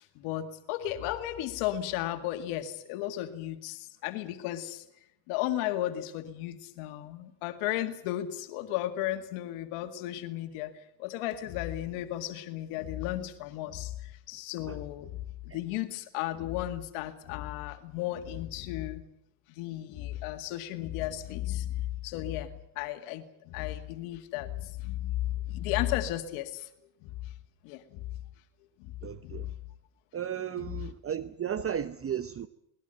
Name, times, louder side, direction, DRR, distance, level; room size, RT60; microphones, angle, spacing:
voice 1, 0.0-4.8 5.3-19.0 19.5-26.7 27.0-27.1 27.6-28.1 28.8-28.9 29.2-29.4, left 13 dB, 85° left, 2.1 m, -34 dB
voice 2, 29.0-29.5 30.1-32.5, right 9 dB, 30° right, 0.8 m, -34 dB
21.5 x 19.5 x 9.0 m
cardioid pair, 115°, 49 cm